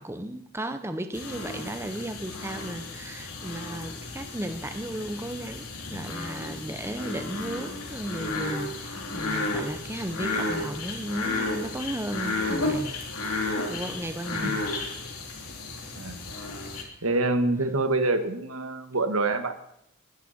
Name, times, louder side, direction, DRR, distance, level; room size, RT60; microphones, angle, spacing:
voice 1, 0.0-13.0 13.7-14.6 16.9-17.0, right 1 dB, 10° right, 8 dB, 0.6 m, -35 dB
sound 1, 1.1-16.8, left 2 dB, 90° left, 3.1 m, -33 dB
voice 2, 17.0-19.5, right 2 dB, 75° right, 8 dB, 1.6 m, -26 dB
20.5 x 11.0 x 4.3 m, 0.76 s
head